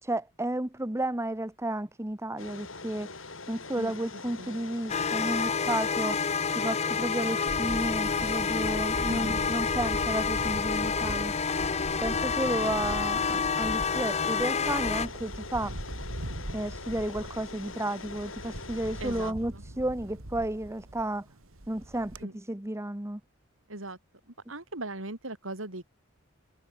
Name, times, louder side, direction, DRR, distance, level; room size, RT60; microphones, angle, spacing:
voice 1, 0.0-3.2 3.5-11.3 12.0-15.7 16.5-21.3 21.7-23.2, right 1 dB, 15° right, 1.2 m, -32 dB
sound 1, 2.4-19.3, left 3 dB, 70° left, 5.0 m, -43 dB
voice 2, 3.8-4.5 9.1-9.4 19.0-19.6 22.2-22.4 23.7-24.0 24.3-25.8, right 2 dB, 75° right, 3.8 m, -39 dB
sound 2, 4.9-15.1, left 5 dB, 35° left, 0.8 m, -29 dB
Camera, 7.5-22.2, right 1 dB, 90° right, 3.1 m, -41 dB
head